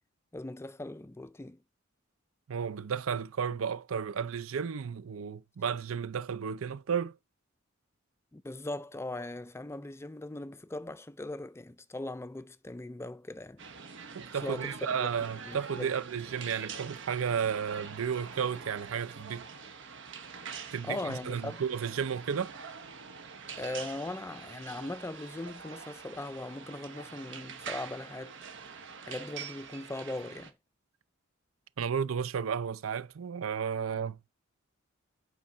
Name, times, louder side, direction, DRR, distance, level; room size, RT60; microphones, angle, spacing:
voice 1, 0.3-1.6 8.3-13.6 14.4-15.1 15.5-15.9 20.8-21.6 23.6-28.4 29.0-30.5, left 2 dB, 15° left, 0.4 m, -39 dB
voice 2, 2.5-7.2 14.1-19.4 20.7-22.5 31.8-34.3, right 7 dB, 85° right, 0.5 m, -33 dB
sound 1, 13.6-30.5, right 6 dB, 65° right, 1.3 m, -45 dB
8.8 x 4.7 x 5.5 m
head